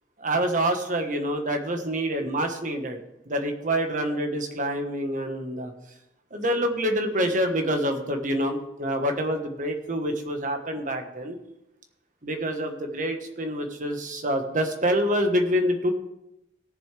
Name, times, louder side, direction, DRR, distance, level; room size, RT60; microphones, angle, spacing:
voice 1, 0.2-3.0 3.3-5.7 6.3-11.4 12.2-15.9, equal, 45° right, 5 dB, 1.4 m, -26 dB
18.0 x 7.1 x 3.4 m, 0.88 s
head